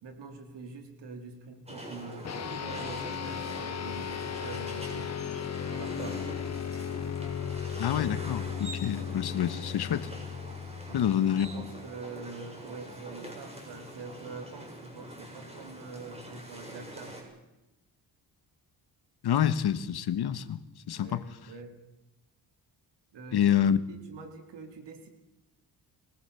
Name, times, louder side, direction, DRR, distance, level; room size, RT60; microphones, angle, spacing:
voice 1, 0.0-5.1 5.7-6.3 9.5-9.6 10.8-11.0 11.5-17.2 20.9-21.7 23.1-23.5 23.9-25.1, right 4 dB, 80° right, 4.1 m, -45 dB
sound 1, 1.7-17.2, right 1 dB, 15° right, 7.6 m, -44 dB
sound 2, 2.2-11.9, left 8 dB, 40° left, 1.1 m, -36 dB
voice 2, 7.8-10.1 10.9-11.7 19.2-20.6 20.9-21.2 23.3-23.8, left 9 dB, 65° left, 1.4 m, -27 dB
24.5 x 19.0 x 7.0 m
cardioid pair, 100°, 42 cm